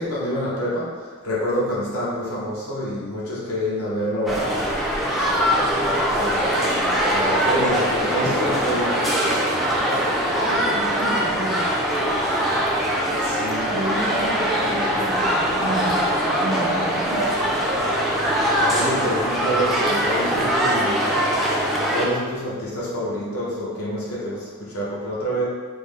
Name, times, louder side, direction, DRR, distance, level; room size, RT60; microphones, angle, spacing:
voice 1, 0.0-4.7 6.1-9.1 13.2-13.7 18.7-21.2 21.9-25.4, equal, 65° left, -7 dB, 0.7 m, -27 dB
sound 1, 4.3-22.1, equal, ahead, 0.3 m, -22 dB
voice 2, 10.3-11.6 13.7-17.3, right 1 dB, 80° right, -9 dB, 0.9 m, -30 dB
3.5 x 2.1 x 3.2 m, 1.6 s
head